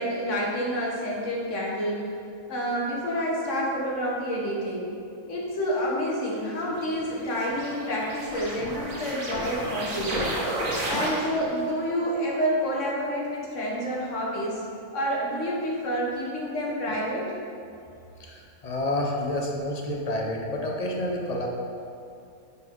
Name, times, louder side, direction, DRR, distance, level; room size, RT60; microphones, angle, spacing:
voice 1, 0.0-2.1 2.5-4.9 5.3-10.2 10.8-14.6 14.9-17.3, equal, 55° left, -3 dB, 1.4 m, -28 dB
sound 1, 6.6-11.6, right 1 dB, 65° right, 1.5 m, -32 dB
voice 2, 18.2-21.5, left 1 dB, 40° left, 0 dB, 0.6 m, -29 dB
9.5 x 3.9 x 3.7 m, 2.5 s
omnidirectional pair, 1.6 m